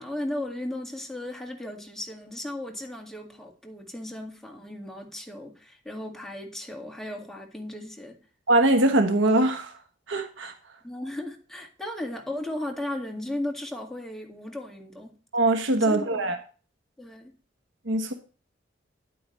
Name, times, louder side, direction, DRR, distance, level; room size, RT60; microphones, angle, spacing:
voice 1, 0.0-8.2 10.8-15.2 15.8-16.2 17.0-17.3, left 1 dB, ahead, 1.9 m, -36 dB
voice 2, 8.5-9.7 10.1-10.5 15.3-16.4 17.9-18.1, right 2 dB, 85° right, 1.2 m, -22 dB
9.7 x 8.7 x 3.1 m
head